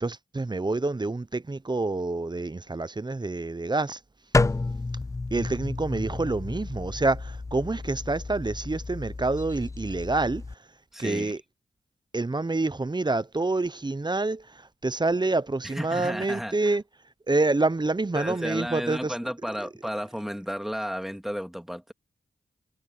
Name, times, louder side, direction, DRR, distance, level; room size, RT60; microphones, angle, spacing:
voice 1, 0.0-4.0 5.3-10.4 11.0-11.4 12.1-16.8 17.3-19.1, right 2 dB, 25° right, 0.7 m, -27 dB
sound 1, 4.3-10.5, left 3 dB, 20° left, 0.4 m, -31 dB
voice 2, 10.9-11.3 15.6-16.8 18.1-21.9, equal, ahead, 2.8 m, -33 dB
cardioid pair, 50°, 17 cm